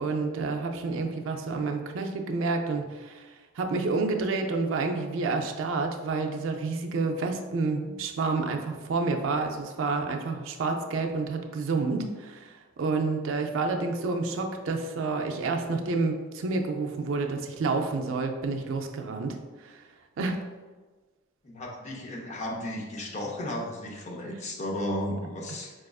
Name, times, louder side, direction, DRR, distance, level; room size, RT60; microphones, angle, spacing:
voice 1, 0.0-19.8 20.2-20.4, right 3 dB, 75° right, 4 dB, 0.4 m, -29 dB
voice 2, 21.4-25.7, left 1 dB, 35° left, -1 dB, 0.5 m, -34 dB
4.8 x 2.4 x 2.3 m, 1.3 s
head